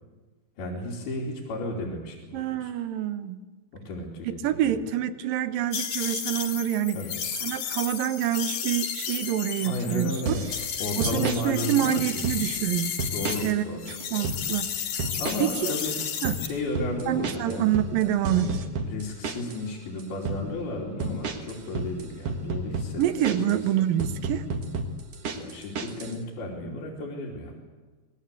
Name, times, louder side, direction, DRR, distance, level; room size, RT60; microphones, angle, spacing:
voice 1, 0.6-2.7 3.7-4.8 6.9-7.2 9.6-10.4 10.8-12.3 13.1-13.9 15.2-16.0 16.4-17.7 18.4-18.5 18.8-23.6 25.3-27.6, left 1 dB, 85° left, -3 dB, 4.8 m, -33 dB
voice 2, 2.3-3.4 4.4-7.0 7.4-10.4 11.0-12.9 13.4-13.7 14.1-15.1 15.4-15.7 16.2-16.4 17.1-18.5 23.0-24.5, right 11 dB, 75° right, 12 dB, 2.6 m, -27 dB
sound 1, 5.7-13.5 13.8-16.5, left 8 dB, 65° left, 3.3 m, -33 dB
sound 2, 10.3-10.7 11.0-11.4 12.0-12.6 13.0-13.6 13.9-14.4 15.0-15.6 15.9-19.6 20.0-20.4 21.0-23.6 24.0-26.2, right 3 dB, 50° right, 2.4 m, -31 dB
26.0 x 20.0 x 8.3 m, 1.3 s
omnidirectional pair, 4.3 m